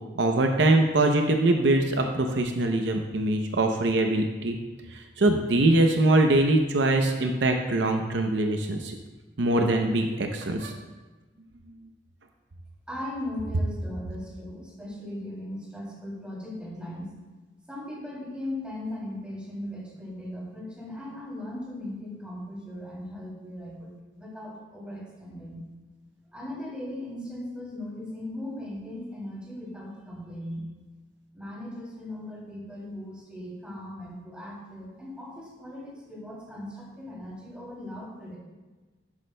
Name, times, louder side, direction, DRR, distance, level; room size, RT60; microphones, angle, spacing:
voice 1, 0.1-4.6 4.9-9.0 9.4-10.8, right 2 dB, 70° right, 4 dB, 0.6 m, -23 dB
voice 2, 12.9-17.1 17.7-25.6 26.3-30.7 31.3-38.4, left 1 dB, 5° right, -6 dB, 2.8 m, -38 dB
11.5 x 8.3 x 2.2 m, 1.2 s
head